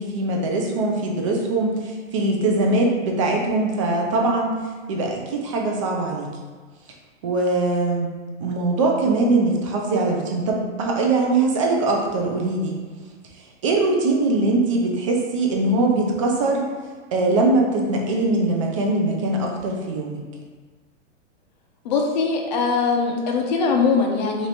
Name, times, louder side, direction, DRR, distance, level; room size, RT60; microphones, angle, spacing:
voice 1, 0.0-4.6 4.9-6.3 7.2-8.1 8.4-12.7 13.6-16.7 17.1-20.2, right 2 dB, 30° right, 0 dB, 0.4 m, -22 dB
voice 2, 21.8-24.5, left 4 dB, 40° left, 1 dB, 0.5 m, -21 dB
3.2 x 3.0 x 4.0 m, 1.4 s
supercardioid pair, 165°, 36 cm